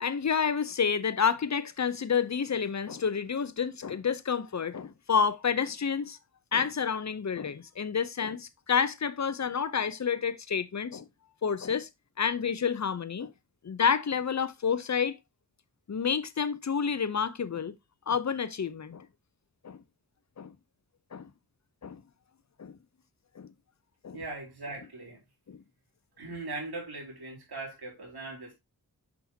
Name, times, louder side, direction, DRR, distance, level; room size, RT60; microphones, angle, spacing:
voice 1, 0.0-6.2 6.5-11.0 11.4-11.9 12.2-13.3 13.6-15.2 15.9-17.8 18.1-19.1 19.6-19.8 20.4-20.5 21.1-21.3 21.8-22.0 22.6-22.8 23.4-23.5 24.0-24.2 25.5-25.6, left 6 dB, 45° left, 0.7 m, -29 dB
voice 2, 24.1-25.2 26.2-28.5, right 3 dB, 80° right, 3.4 m, -40 dB
6.2 x 5.9 x 2.8 m
cardioid pair, 60°, 38 cm